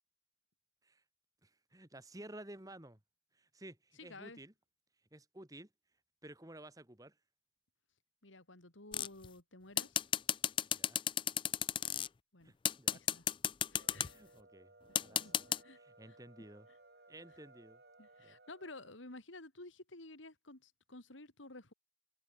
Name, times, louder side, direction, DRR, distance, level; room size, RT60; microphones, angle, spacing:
voice 1, 1.4-3.0 3.3-4.5 5.1-5.7 6.2-7.2 10.7-11.0 12.4-13.0 14.0-14.7 15.0-16.7 17.1-17.8 18.2-18.4, right 1 dB, 20° right, 2.0 m, -54 dB
voice 2, 4.0-4.4 8.2-10.0 12.3-12.5 12.9-13.2 13.7-14.2 15.2-15.3 15.6-15.8 16.1-16.2 18.0-21.7, left 2 dB, 85° left, 3.7 m, -52 dB
sound 1, 8.9-9.3 9.8-12.1 12.6-14.1 14.9-15.6, left 10 dB, 25° left, 0.3 m, -33 dB
sound 2, 13.7-19.0, right 2 dB, 55° right, 4.6 m, -62 dB
head